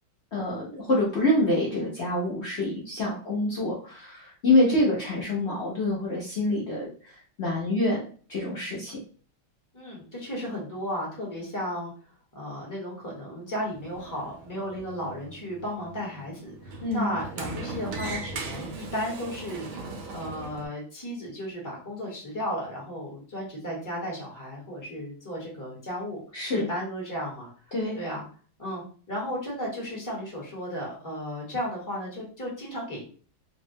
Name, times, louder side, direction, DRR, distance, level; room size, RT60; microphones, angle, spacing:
voice 1, 0.3-7.1 7.4-9.0 16.8-17.2 26.3-26.7 27.7-28.0, left 1 dB, 75° left, -5 dB, 0.6 m, -26 dB
voice 2, 9.7-11.9 12.3-19.7 20.1-26.2 26.5-27.5 27.9-28.2 28.6-28.8 29.1-33.0, equal, 15° left, -4 dB, 0.6 m, -34 dB
Sliding door, 13.6-20.7, right 3 dB, 85° right, 1.5 m, -39 dB
3.5 x 2.1 x 2.7 m, 0.41 s
omnidirectional pair, 2.2 m